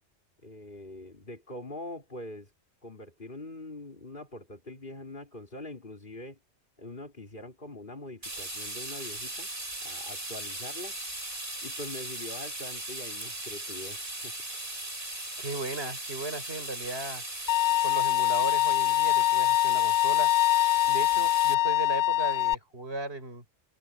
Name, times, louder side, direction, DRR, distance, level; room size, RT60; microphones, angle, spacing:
voice 1, 0.4-2.5 2.8-6.4 6.8-9.5 9.8-11.0 11.6-14.4, left 2 dB, 50° left, 4.4 m, -43 dB
sound 1, 8.2-21.5, right 2 dB, 50° right, 4.9 m, -38 dB
voice 2, 15.4-17.2 17.8-20.3 20.9-23.4, right 2 dB, 65° right, 6.5 m, -36 dB
Bowed string instrument, 17.5-22.5, left 14 dB, 75° left, 0.9 m, -24 dB
omnidirectional pair, 1.1 m